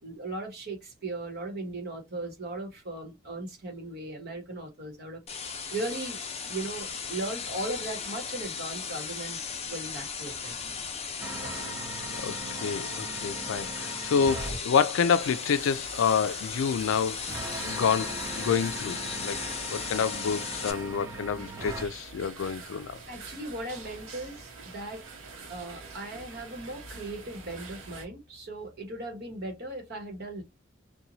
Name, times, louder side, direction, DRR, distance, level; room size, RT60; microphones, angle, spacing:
voice 1, 0.0-5.2 5.7-10.5 11.4-11.6 23.1-25.0 25.5-30.4, right 2 dB, 50° right, 1.1 m, -38 dB
sound 1, 5.3-20.7, left 6 dB, 30° left, 0.6 m, -36 dB
sound 2, 11.2-14.6 17.3-21.9, right 2 dB, 15° right, 0.6 m, -39 dB
voice 2, 12.2-17.2 17.6-19.4 19.7-23.0, left 6 dB, 75° left, 0.3 m, -28 dB
sound 3, 15.2-28.1, right 4 dB, 80° right, 0.9 m, -46 dB
2.9 x 2.2 x 2.6 m
head